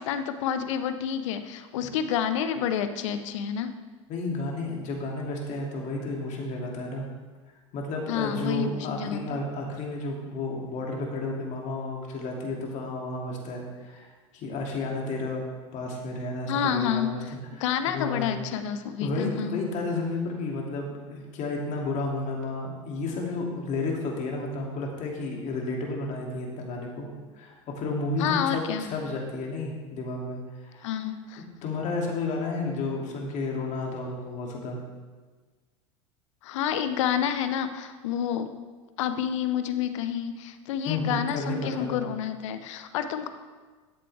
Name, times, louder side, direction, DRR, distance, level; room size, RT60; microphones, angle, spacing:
voice 1, 0.0-3.7 8.1-9.4 16.5-17.3 17.6-19.6 28.2-28.9 30.8-31.4 36.4-38.5 39.0-43.3, left 8 dB, 70° left, 10 dB, 0.8 m, -29 dB
voice 2, 4.1-7.1 7.7-14.1 14.3-15.4 15.7-17.2 17.6-18.3 19.0-27.1 27.4-30.9 31.6-34.8 40.9-42.0, left 2 dB, 50° left, -1 dB, 2.5 m, -32 dB
12.5 x 7.7 x 3.4 m, 1.4 s
hypercardioid pair, 85°, 16 cm